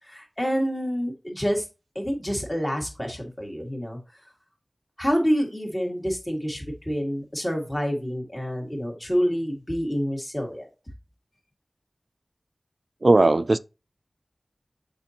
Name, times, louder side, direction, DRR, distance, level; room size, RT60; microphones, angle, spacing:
voice 1, 0.0-1.7 2.0-4.0 5.0-10.7, equal, 25° left, 2.0 m, -27 dB
voice 2, 13.0-13.6, right 2 dB, 55° right, 0.3 m, -17 dB
6.7 x 5.3 x 2.9 m
wide cardioid pair, 60°, 0 cm